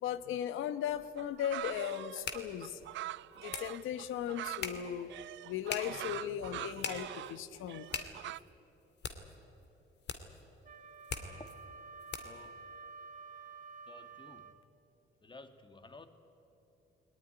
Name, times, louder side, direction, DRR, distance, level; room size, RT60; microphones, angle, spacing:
voice 1, 0.0-2.8 3.4-5.1 5.4-7.9, left 10 dB, 85° left, 13 dB, 1.1 m, -37 dB
sound 1, 0.9-12.5, left 6 dB, 60° left, 2.4 m, -45 dB
sound 2, 1.2-8.4, right 14 dB, 70° right, 0.4 m, -44 dB
Wind instrument woodwind instrument, 10.6-14.6, right 4 dB, 40° right, 1.7 m, -50 dB
voice 2, 11.1-11.6 12.1-12.6 13.9-14.5 15.2-16.1, left 3 dB, 25° left, 8 dB, 2.0 m, -54 dB
20.0 x 19.5 x 10.0 m, 3.0 s
cardioid pair, 90°, 20 cm